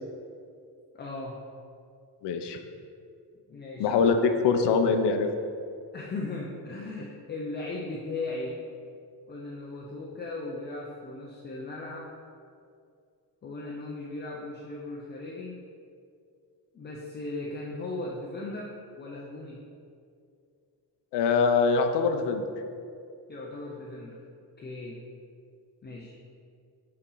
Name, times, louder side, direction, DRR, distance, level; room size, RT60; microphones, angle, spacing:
voice 1, 0.9-1.4 3.5-3.9 5.9-8.6 9.3-12.1 13.4-15.6 16.7-19.6 23.3-24.2 24.6-25.0 25.8-26.1, left 2 dB, 25° left, -3 dB, 0.5 m, -37 dB
voice 2, 2.2-2.6 3.8-5.3 21.1-22.5, left 5 dB, 80° left, 6 dB, 0.7 m, -23 dB
8.0 x 4.4 x 3.8 m, 2.4 s
cardioid pair, 170°, 40 cm